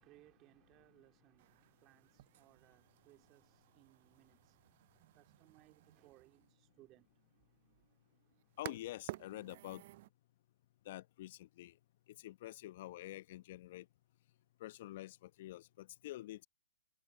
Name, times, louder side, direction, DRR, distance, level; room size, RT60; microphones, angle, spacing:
voice 1, 0.0-4.8 5.1-7.1, right 18 dB, 30° right, 3.0 m, -66 dB
sound 1, 1.4-10.1, right 17 dB, 45° right, 0.4 m, -54 dB
voice 2, 8.6-9.8 10.8-11.7 12.2-13.9 14.6-16.5, left 15 dB, 50° left, 1.0 m, -47 dB
figure-of-eight pair, 120°, 0 cm